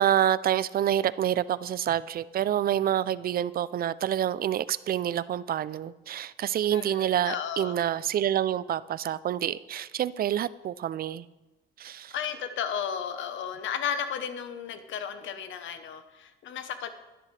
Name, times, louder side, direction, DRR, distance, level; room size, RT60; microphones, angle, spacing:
voice 1, 0.0-11.3 11.8-12.2, right 11 dB, 50° right, 18 dB, 0.4 m, -27 dB
voice 2, 6.7-7.7 11.9-16.9, left 8 dB, 75° left, 10 dB, 0.9 m, -34 dB
11.5 x 10.0 x 3.3 m, 1.1 s
cardioid pair, 90°, 20 cm